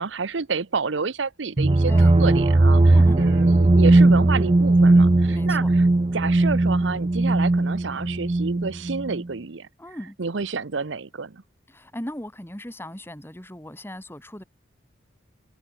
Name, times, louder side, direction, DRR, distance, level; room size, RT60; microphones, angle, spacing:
voice 1, 0.0-5.9 6.1-9.7 10.2-11.4, right 4 dB, 75° right, 0.8 m, -29 dB
sound 1, 1.6-9.2, right 2 dB, 25° right, 0.5 m, -18 dB
voice 2, 1.9-2.2 2.9-3.3 5.3-5.7 9.8-10.2 11.7-14.4, left 1 dB, 10° left, 2.2 m, -37 dB
head